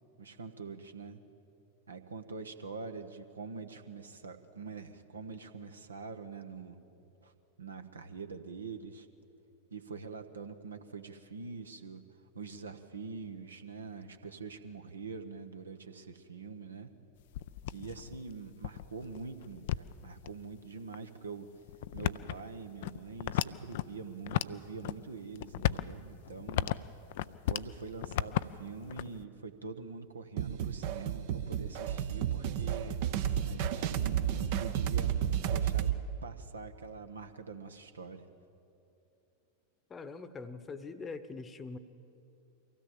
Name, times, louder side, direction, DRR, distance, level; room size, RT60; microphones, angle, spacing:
voice 1, 0.2-1.2 1.9-6.8 7.2-7.3 7.6-9.1 9.7-12.0 12.3-16.9 17.7-21.5 21.9-26.8 27.5-33.0 33.5-35.9 36.2-38.3, right 4 dB, 75° right, 8 dB, 1.1 m, -44 dB
sound 1, 17.2-20.3 20.9-21.0 21.7-23.9 24.2-25.0 25.3-27.7 28.0-29.3, left 13 dB, 55° left, 0.4 m, -35 dB
sound 2, 30.4-36.0, right 9 dB, 50° right, 0.9 m, -32 dB
voice 2, 39.9-41.8, left 4 dB, 20° left, 13 dB, 1.0 m, -43 dB
24.0 x 16.5 x 7.5 m, 2.8 s
figure-of-eight pair, 90°, 0 cm